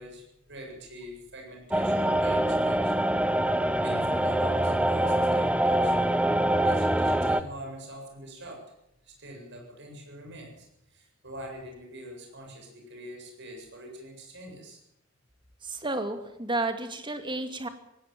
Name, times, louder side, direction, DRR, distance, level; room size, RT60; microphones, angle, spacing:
voice 1, 0.0-3.1 3.8-6.1 6.6-8.6 9.0-14.8, equal, 60° right, 1 dB, 7.9 m, -44 dB
sound 1, 1.7-7.4, right 1 dB, 5° right, 0.8 m, -24 dB
voice 2, 15.6-17.7, right 2 dB, 25° right, 8 dB, 2.3 m, -31 dB
18.5 x 17.0 x 9.2 m, 0.82 s
head